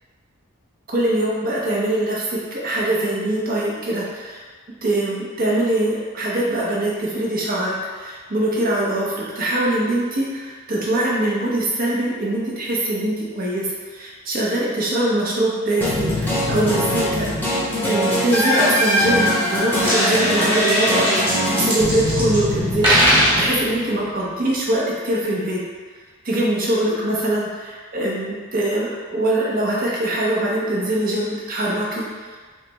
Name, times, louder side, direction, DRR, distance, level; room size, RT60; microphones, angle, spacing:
voice 1, 0.9-4.4 4.8-25.6 26.2-32.4, right 1 dB, 45° right, -4 dB, 0.8 m, -23 dB
sound 1, 15.8-24.0, left 1 dB, 10° left, 0.8 m, -21 dB
sound 2, 19.7-20.0 20.5-22.4 22.7-23.5, equal, 25° right, 1.2 m, -19 dB
3.2 x 3.0 x 3.3 m, 1.5 s
head